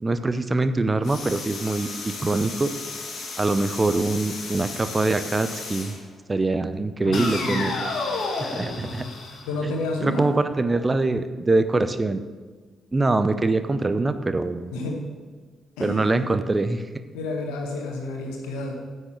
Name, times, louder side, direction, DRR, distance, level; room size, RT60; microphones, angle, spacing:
voice 1, 0.0-2.7 3.4-6.0 6.3-7.9 8.4-9.1 10.0-12.2 12.9-14.7 15.8-16.9, right 2 dB, 30° right, 11 dB, 0.7 m, -24 dB
sound 1, 1.0-6.0 7.1-10.0, left 3 dB, 60° left, 1.8 m, -33 dB
voice 2, 7.0-7.7 9.5-10.3 14.7-15.0 15.8-16.2 17.1-18.7, left 2 dB, 75° left, 1 dB, 1.5 m, -30 dB
9.6 x 6.5 x 6.1 m, 1.4 s
hypercardioid pair, 40°, 0 cm